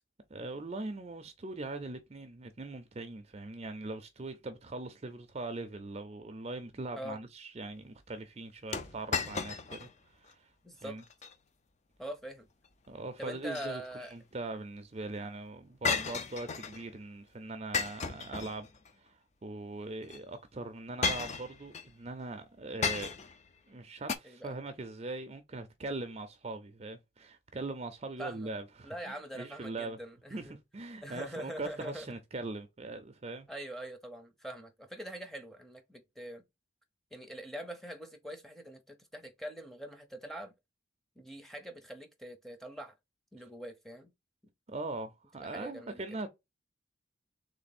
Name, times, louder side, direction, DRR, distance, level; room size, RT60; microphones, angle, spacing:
voice 1, 0.3-10.5 10.8-11.0 12.9-18.7 19.0-23.1 23.7-30.0 30.3-33.5 44.7-46.3, right 2 dB, 35° right, 0.5 m, -41 dB
sound 1, 8.7-9.9 10.3-10.4 11.0-11.3 13.2-14.1 15.8-16.8 17.7-18.9 20.0-20.2 21.0-21.9 22.8-23.4 24.1-24.2, left 5 dB, 35° left, 0.5 m, -34 dB
voice 2, 10.6-11.0 12.0-12.5 13.2-14.1 24.2-24.6 28.2-28.5 28.8-30.6 31.0-32.1 33.5-36.4 37.1-40.5 41.2-42.9 43.3-44.1 45.4-46.0, right 1 dB, ahead, 0.7 m, -43 dB
3.4 x 3.3 x 4.1 m
head